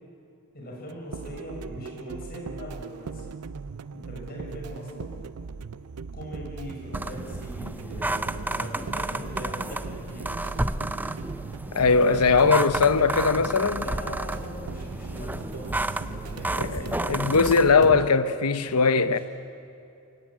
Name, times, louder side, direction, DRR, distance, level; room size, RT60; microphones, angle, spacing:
voice 1, 0.5-3.3 3.9-5.2 6.1-11.1 12.0-12.8 13.7-18.0, equal, 45° left, 6.3 m, -40 dB
sound 1, 0.9-18.1, right 5 dB, 80° right, 0.5 m, -39 dB
sound 2, 6.9-17.7, right 1 dB, 10° right, 0.4 m, -32 dB
voice 2, 11.7-13.8 16.6-16.8 17.1-19.2, left 4 dB, 85° left, 0.9 m, -20 dB
23.0 x 17.5 x 8.7 m
head